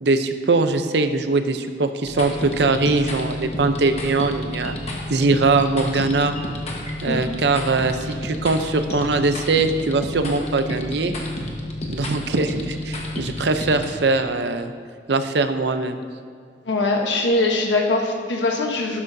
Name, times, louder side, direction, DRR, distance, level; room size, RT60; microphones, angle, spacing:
voice 1, 0.0-4.8 5.1-6.3 7.0-11.1 11.9-14.7 15.1-16.0, right 3 dB, 65° right, 8 dB, 0.6 m, -21 dB
sound 1, 2.0-13.9, left 1 dB, 35° left, 1.2 m, -31 dB
voice 2, 16.7-19.0, left 2 dB, 80° left, 1 dB, 1.0 m, -22 dB
12.5 x 12.0 x 2.7 m, 2.1 s
head